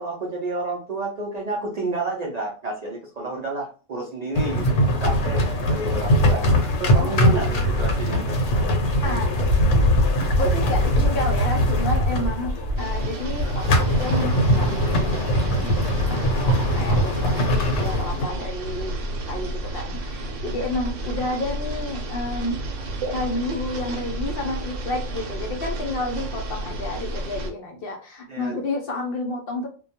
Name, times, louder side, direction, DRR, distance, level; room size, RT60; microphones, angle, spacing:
voice 1, 0.0-4.7 5.0-8.4 28.3-28.6, right 3 dB, 65° right, 0 dB, 0.4 m, -30 dB
sound 1, 4.3-18.2, equal, 80° left, 1.0 m, -21 dB
voice 2, 9.0-9.6 10.2-15.8 16.1-18.9 19.3-29.7, left 2 dB, 60° left, 1 dB, 0.6 m, -30 dB
sound 2, 12.8-27.5, right 1 dB, 80° right, 0.9 m, -32 dB
2.2 x 2.2 x 2.7 m, 0.37 s
omnidirectional pair, 1.3 m